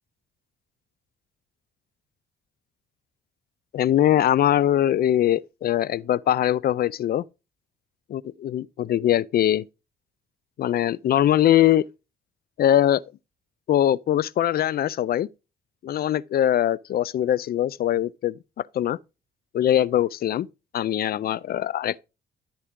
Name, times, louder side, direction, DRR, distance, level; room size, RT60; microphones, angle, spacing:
voice 1, 3.7-7.2 8.1-9.7 10.6-11.9 12.6-13.0 13.7-15.3 15.8-18.3 18.7-19.0 19.5-20.5 20.7-22.0, left 11 dB, 50° left, 0.4 m, -22 dB
12.5 x 4.7 x 3.7 m
cardioid pair, 90°, 20 cm